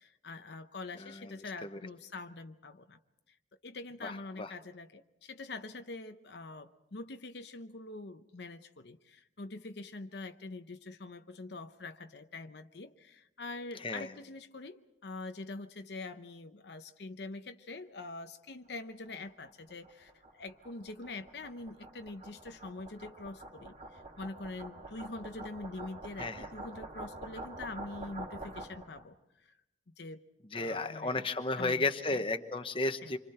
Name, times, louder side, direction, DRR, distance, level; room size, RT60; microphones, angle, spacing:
voice 1, 0.0-3.0 3.6-29.5 29.9-30.2 30.5-31.2 31.6-31.8 32.1-32.2 33.0-33.1, left 3 dB, 70° left, 8 dB, 0.8 m, -44 dB
voice 2, 1.0-1.8 4.0-4.5 13.8-14.1 26.2-26.5 30.5-33.2, left 2 dB, 30° left, 8 dB, 1.0 m, -34 dB
sound 1, 19.1-29.0, right 2 dB, 35° right, 2.8 m, -47 dB
27.5 x 25.0 x 4.4 m, 0.88 s
head